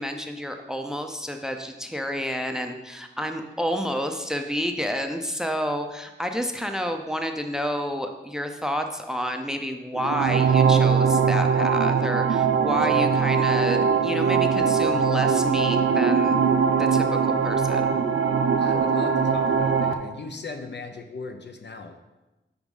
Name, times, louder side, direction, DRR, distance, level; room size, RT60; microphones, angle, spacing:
voice 1, 0.0-16.4 16.8-18.0, equal, 5° right, 5 dB, 0.6 m, -29 dB
sound 1, 9.9-19.9, right 6 dB, 75° right, 0.5 m, -21 dB
voice 2, 18.6-22.0, left 3 dB, 60° left, 5 dB, 0.6 m, -37 dB
5.0 x 4.8 x 5.4 m, 1.0 s
wide cardioid pair, 60°, 20 cm